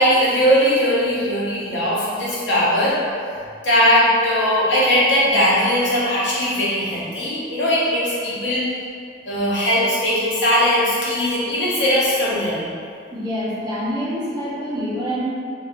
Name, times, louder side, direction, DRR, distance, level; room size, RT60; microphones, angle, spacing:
voice 1, 0.0-2.9 3.6-8.6 9.2-12.7, equal, 85° left, -8 dB, 0.9 m, -19 dB
voice 2, 13.1-15.2, equal, 20° right, -8 dB, 0.6 m, -26 dB
2.3 x 2.3 x 3.6 m, 2.3 s
head